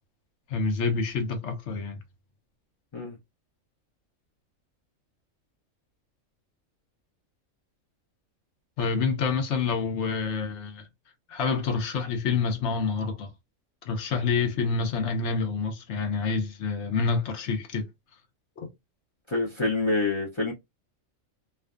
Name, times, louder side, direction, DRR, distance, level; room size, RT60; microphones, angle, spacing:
voice 1, 0.5-2.0 8.8-10.9 11.3-13.3 13.8-17.9 18.6-18.7, left 4 dB, 65° left, 0.9 m, -27 dB
voice 2, 19.3-20.5, left 3 dB, 45° left, 0.4 m, -26 dB
2.4 x 2.3 x 2.3 m
omnidirectional pair, 1.4 m